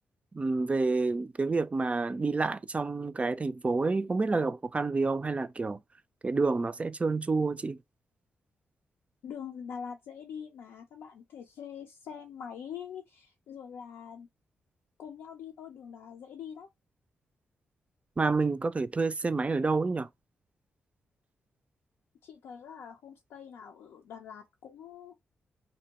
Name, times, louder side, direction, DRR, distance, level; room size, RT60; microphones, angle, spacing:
voice 1, 0.3-5.8 6.2-7.8 18.2-20.1, right 3 dB, 30° right, 0.3 m, -28 dB
voice 2, 9.2-14.3 15.0-16.7 22.2-25.1, left 7 dB, 80° left, 0.5 m, -44 dB
2.6 x 2.1 x 2.8 m
supercardioid pair, 40°, 4 cm